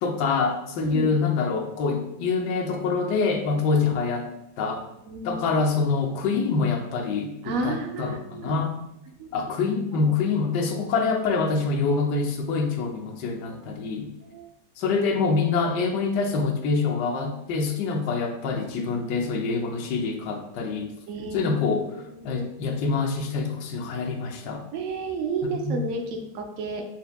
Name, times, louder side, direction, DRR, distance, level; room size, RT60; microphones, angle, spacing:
voice 1, 0.0-4.9 5.2-8.8 9.3-14.1 14.8-20.9 21.3-21.9 22.2-24.6 25.5-25.8, left 4 dB, 90° left, 4 dB, 1.2 m, -25 dB
voice 2, 0.8-1.1 5.1-5.6 7.4-8.6 9.2-9.3 9.9-10.1 13.5-13.8 14.2-14.5 21.1-22.5 24.7-26.8, right 3 dB, 70° right, 4 dB, 0.8 m, -32 dB
4.4 x 3.5 x 2.2 m, 0.85 s
omnidirectional pair, 1.8 m